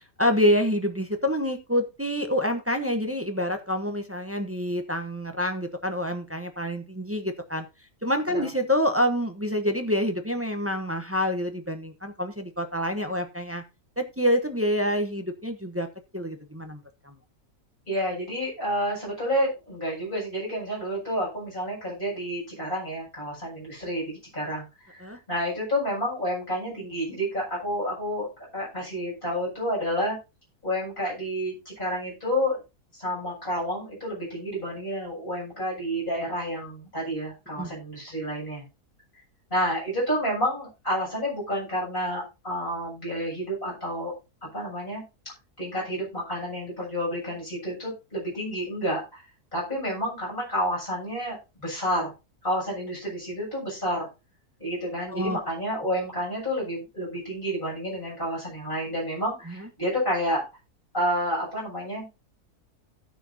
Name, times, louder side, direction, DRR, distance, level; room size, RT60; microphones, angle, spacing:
voice 1, 0.2-7.6 8.0-13.6 14.0-15.9 16.1-16.8 17.0-17.1 25.0-25.2 37.6-37.7 55.1-55.4 59.5-59.7, equal, 10° right, 6 dB, 0.7 m, -27 dB
voice 2, 17.9-28.3 28.5-30.2 30.6-32.6 32.9-38.6 39.5-44.1 44.5-45.0 45.6-49.2 49.5-52.1 52.4-54.1 54.6-60.4 60.9-62.1, equal, 30° left, -5 dB, 7.7 m, -29 dB
16.5 x 6.2 x 2.8 m, 0.27 s
omnidirectional pair, 1.6 m